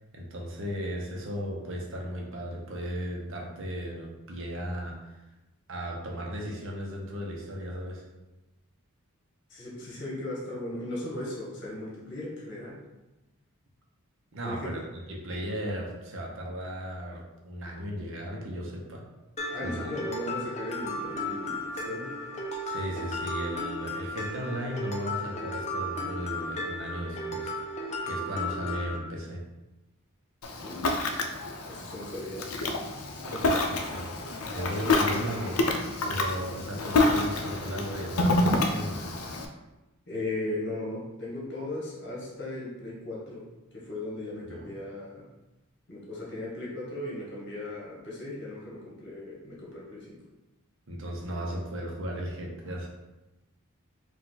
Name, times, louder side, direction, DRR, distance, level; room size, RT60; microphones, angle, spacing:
voice 1, 0.1-5.1 5.7-8.0 14.3-14.8 15.1-19.0 19.6-19.9 22.6-27.6 28.0-29.4 33.4-34.1 34.5-35.7 36.1-39.2 44.4-44.7 50.9-52.9, equal, 65° right, -1 dB, 0.9 m, -36 dB
voice 2, 9.5-12.8 14.4-14.7 19.5-22.1 30.6-30.8 31.7-32.5 40.1-43.4 43.7-45.3 45.9-50.2, left 1 dB, 55° left, -4 dB, 1.4 m, -37 dB
Mallet percussion, 19.4-29.0, left 1 dB, 30° left, 0.6 m, -35 dB
Ocean, 30.4-39.4, left 2 dB, 85° left, 0.5 m, -28 dB
4.6 x 2.5 x 3.9 m, 1.0 s
head